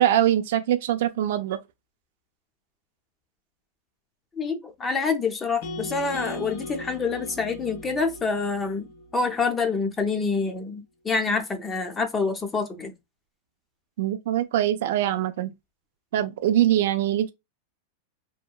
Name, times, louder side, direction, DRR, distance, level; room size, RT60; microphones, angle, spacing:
voice 1, 0.0-1.6 14.0-15.5 16.1-17.3, right 12 dB, 65° right, 0.3 m, -23 dB
voice 2, 4.4-12.9, left 4 dB, 15° left, 0.4 m, -27 dB
sound 1, 5.6-9.8, left 1 dB, 65° left, 0.8 m, -38 dB
2.8 x 2.1 x 2.3 m
supercardioid pair, 165°, 0 cm